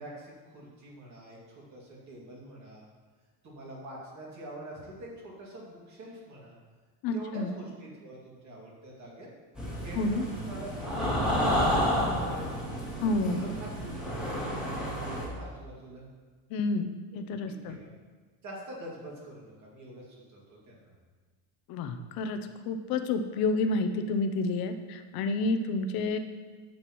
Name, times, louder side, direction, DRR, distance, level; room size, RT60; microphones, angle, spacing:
voice 1, 0.0-2.9 3.4-6.6 7.1-9.3 9.8-12.6 12.9-16.1 17.6-17.9 18.4-20.9, right 1 dB, 35° right, -3 dB, 2.5 m, -45 dB
voice 2, 7.0-7.5 9.9-10.3 13.0-13.5 16.5-17.8 21.7-26.2, left 3 dB, 50° left, 8 dB, 0.8 m, -29 dB
sound 1, 9.6-15.3, equal, ahead, 1.9 m, -30 dB
9.9 x 7.8 x 3.1 m, 1.4 s
cardioid pair, 160°, 46 cm